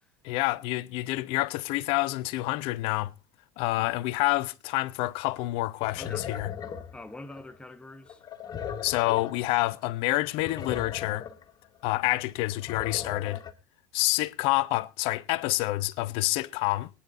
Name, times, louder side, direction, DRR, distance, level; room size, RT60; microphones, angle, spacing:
voice 1, 0.2-3.1 3.6-6.5 8.8-11.3 11.8-13.4 13.9-16.9, left 19 dB, 60° left, 0.8 m, -28 dB
sound 1, 5.8-7.6 8.1-9.5 9.8-9.9 10.1-11.5 11.9-13.5, left 8 dB, 40° left, 1.6 m, -38 dB
voice 2, 6.0-6.3 6.9-8.2, left 2 dB, 10° left, 1.0 m, -45 dB
23.5 x 10.0 x 2.7 m
hypercardioid pair, 75°, 11 cm